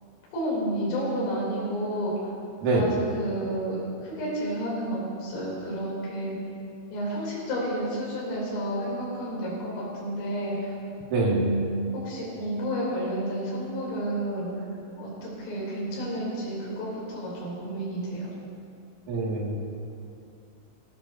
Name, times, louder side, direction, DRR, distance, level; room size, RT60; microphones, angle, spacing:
voice 1, 0.3-2.3 2.7-6.4 6.9-10.7 11.2-11.6 11.9-14.5 15.0-18.3, right 1 dB, 75° left, -7 dB, 6.3 m, -30 dB
voice 2, 19.1-19.6, right 3 dB, 50° right, -4 dB, 3.1 m, -24 dB
23.0 x 15.0 x 2.8 m, 2.5 s
omnidirectional pair, 6.0 m